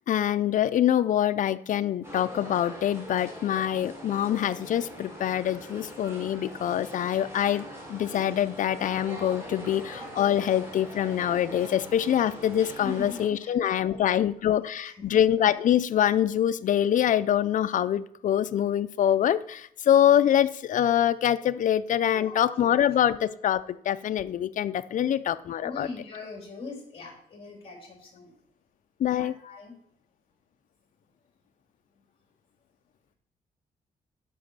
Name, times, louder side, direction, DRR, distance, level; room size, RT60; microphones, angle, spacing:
voice 1, 0.1-7.6 7.9-25.9 29.0-29.4, left 10 dB, 55° left, 12 dB, 0.5 m, -25 dB
sound 1, 2.0-13.3, equal, 15° right, 3.3 m, -42 dB
voice 2, 12.8-13.5 13.8-14.3 15.0-15.1 22.1-22.5 25.0-25.1 25.6-28.3 29.1-29.7, left 3 dB, 35° left, 0 dB, 3.5 m, -41 dB
10.5 x 6.0 x 5.6 m, 0.66 s
cardioid pair, 140°, 16 cm